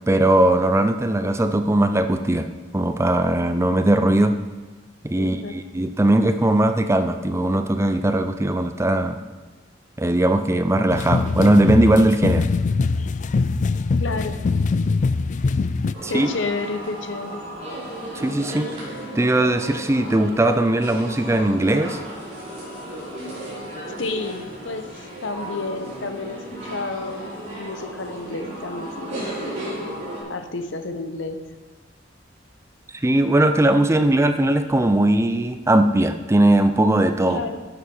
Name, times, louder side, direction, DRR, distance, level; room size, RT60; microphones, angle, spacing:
voice 1, 0.1-4.4 5.0-9.2 10.0-12.5 16.0-16.3 18.1-18.8 19.2-22.0 33.0-37.4, right 1 dB, 15° right, 8 dB, 0.5 m, -19 dB
voice 2, 5.1-5.6 14.0-14.4 16.0-17.4 24.0-29.3 30.3-31.4 37.3-37.6, left 3 dB, 75° left, 8 dB, 0.9 m, -31 dB
sound 1, 10.9-15.9, left 4 dB, 40° left, 0.3 m, -22 dB
sound 2, 15.9-30.2, right 1 dB, 40° right, 4.1 m, -34 dB
11.0 x 7.1 x 5.5 m, 1.3 s
head